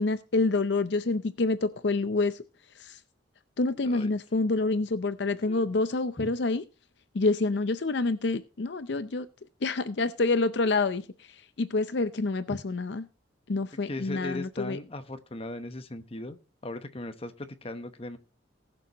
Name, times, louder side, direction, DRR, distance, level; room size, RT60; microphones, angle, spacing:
voice 1, 0.0-2.4 2.8-3.0 3.6-6.6 7.1-9.3 9.6-13.0 13.5-14.8, left 3 dB, 65° left, 12 dB, 0.6 m, -27 dB
voice 2, 3.8-4.1 5.5-5.6 6.2-6.3 12.5-12.6 13.9-16.4 16.6-18.2, left 1 dB, 30° left, 9 dB, 1.0 m, -38 dB
19.5 x 6.9 x 3.0 m, 0.34 s
head